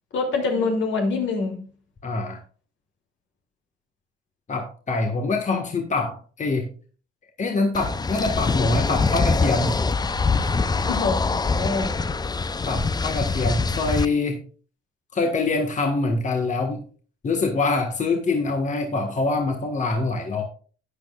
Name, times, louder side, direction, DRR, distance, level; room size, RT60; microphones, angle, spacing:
voice 1, 0.1-1.6 10.9-12.0, left 3 dB, 70° left, 2.7 m, -25 dB
voice 2, 2.0-2.4 4.5-6.7 7.4-9.8 12.6-14.4 15.1-16.8 17.2-20.4, left 3 dB, 40° left, 1.5 m, -24 dB
sound 1, 7.7-14.1, left 4 dB, 20° left, 0.5 m, -24 dB
12.0 x 9.0 x 2.4 m
cardioid pair, 90°, 20 cm